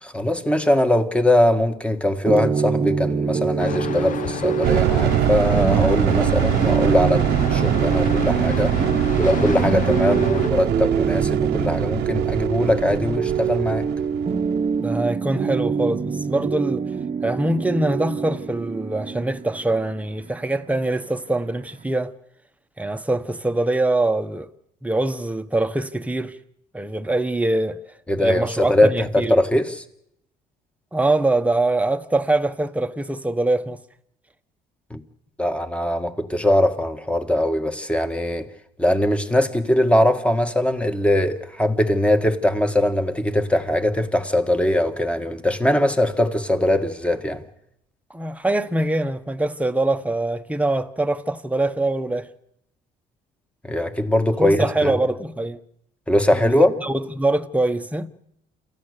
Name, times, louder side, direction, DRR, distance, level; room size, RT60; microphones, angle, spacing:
voice 1, 0.0-8.7 9.2-13.9 28.1-29.8 34.9-35.0 35.4-38.5 38.8-47.4 53.6-55.0 56.1-56.7, left 1 dB, 5° left, 1.8 m, -21 dB
sound 1, 2.3-21.8, right 6 dB, 35° right, 1.0 m, -25 dB
sound 2, 3.6-10.5, left 7 dB, 50° left, 1.0 m, -30 dB
sound 3, 4.6-14.8, right 13 dB, 85° right, 1.0 m, -24 dB
voice 2, 14.8-17.0 17.2-22.1 22.8-24.5 24.8-26.4 26.7-27.8 28.2-29.4 30.9-33.8 48.1-52.3 54.4-55.6 56.3-58.1, right 2 dB, 10° right, 1.1 m, -23 dB
28.5 x 14.5 x 6.8 m
cardioid pair, 110°, 17 cm